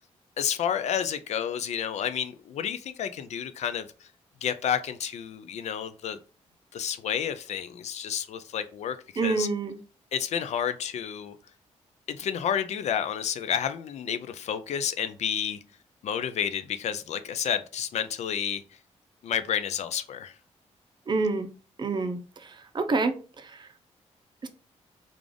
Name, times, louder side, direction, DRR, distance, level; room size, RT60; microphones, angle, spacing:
voice 1, 0.4-4.1 4.4-6.2 6.7-9.5 10.1-11.3 12.1-15.6 16.0-18.6 19.2-20.3, left 8 dB, 70° left, 0.4 m, -30 dB
voice 2, 9.2-9.7 21.1-21.5 21.8-22.2 22.7-23.1 24.4-24.5, right 3 dB, 40° right, 0.6 m, -26 dB
3.4 x 2.4 x 3.7 m
cardioid pair, 95°, 12 cm